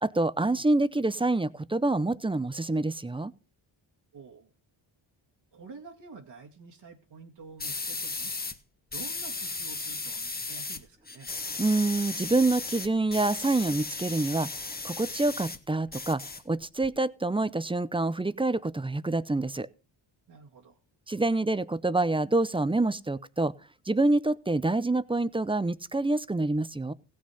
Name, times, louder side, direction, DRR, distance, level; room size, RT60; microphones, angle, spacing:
voice 1, 0.0-3.3 11.6-19.7 21.1-23.5 23.9-26.9, right 2 dB, 10° right, 16 dB, 0.6 m, -27 dB
voice 2, 4.1-4.5 5.5-8.3 8.9-11.3 20.3-20.8, right 4 dB, 55° right, 0 dB, 1.9 m, -48 dB
sound 1, 7.6-8.6 8.9-10.8 11.1-15.6 15.9-16.9, left 3 dB, 20° left, 1.2 m, -36 dB
16.0 x 6.4 x 5.6 m, 0.34 s
cardioid pair, 85°, 48 cm